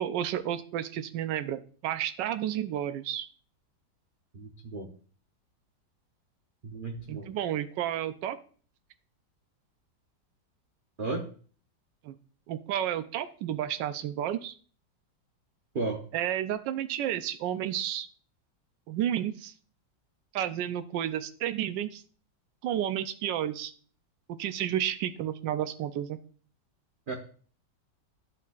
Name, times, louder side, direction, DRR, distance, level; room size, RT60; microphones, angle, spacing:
voice 1, 0.0-3.3 7.1-8.4 12.0-12.1 12.5-14.5 16.1-18.1 18.9-19.5 20.3-22.0 22.6-23.7 24.4-26.2, right 11 dB, 80° right, 11 dB, 1.3 m, -31 dB
voice 2, 4.3-4.9 6.6-7.3 11.0-11.3 15.7-16.0 27.1-27.2, right 3 dB, 45° right, 2 dB, 0.7 m, -34 dB
12.5 x 5.9 x 2.4 m, 0.42 s
omnidirectional pair, 2.0 m